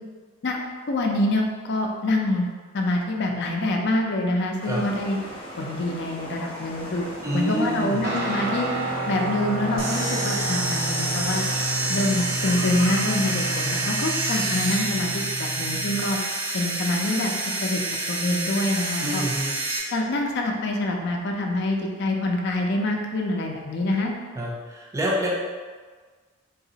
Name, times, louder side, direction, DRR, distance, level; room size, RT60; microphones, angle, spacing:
voice 1, 0.9-2.4 2.7-5.2 5.6-7.0 7.3-8.7 9.1-11.4 11.9-16.2 16.5-17.3 17.6-17.8 18.1-19.2 19.9-24.1, left 1 dB, 55° left, 2 dB, 0.5 m, -25 dB
sound 1, 4.6-13.9, equal, 30° left, 0.9 m, -38 dB
voice 2, 7.2-8.0 19.0-19.6 24.3-25.3, right 1 dB, 15° right, -4 dB, 0.4 m, -27 dB
Guitar, 8.0-16.2, right 2 dB, 55° right, 0.8 m, -31 dB
sound 2, 9.8-19.8, right 2 dB, 85° right, 1.0 m, -28 dB
3.9 x 2.9 x 2.7 m, 1.5 s
head